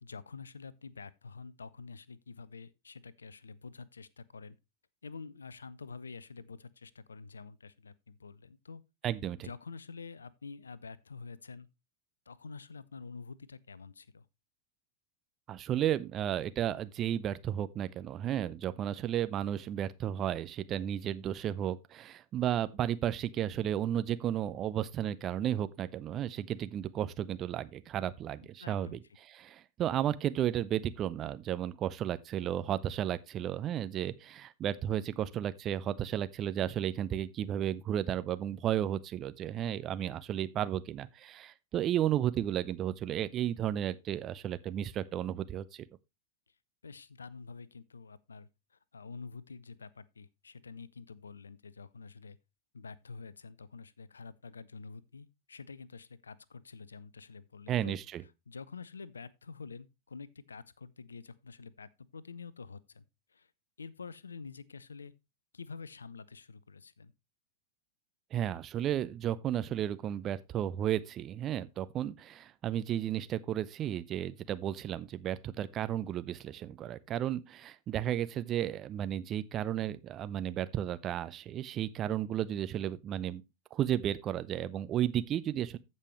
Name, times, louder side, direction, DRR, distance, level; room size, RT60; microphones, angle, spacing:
voice 1, 0.0-4.6 5.0-8.8 9.4-11.7 12.3-14.3 28.4-29.0 46.8-48.5 48.9-52.4 52.7-58.0 58.5-63.0 63.3-63.5 63.8-65.1 65.5-67.1, left 4 dB, 75° left, 0.5 m, -47 dB
voice 2, 9.0-9.5 15.5-29.0 29.3-45.8 57.7-58.2 68.3-83.4 83.7-85.8, right 11 dB, 30° right, 0.6 m, -33 dB
15.0 x 5.5 x 3.1 m
figure-of-eight pair, 90°, 0 cm